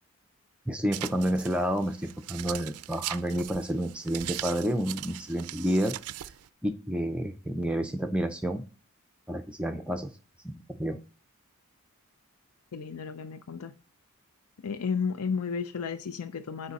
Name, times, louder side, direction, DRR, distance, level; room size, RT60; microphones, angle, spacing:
voice 1, 0.7-6.0 6.6-8.6 9.3-10.1 10.4-11.0, equal, 5° right, 5 dB, 0.4 m, -30 dB
sound 1, 0.9-6.5, right 14 dB, 80° right, 0.4 m, -40 dB
voice 2, 12.7-13.7 14.6-16.7, left 5 dB, 80° left, 12 dB, 0.5 m, -33 dB
8.8 x 4.8 x 4.1 m, 0.34 s
head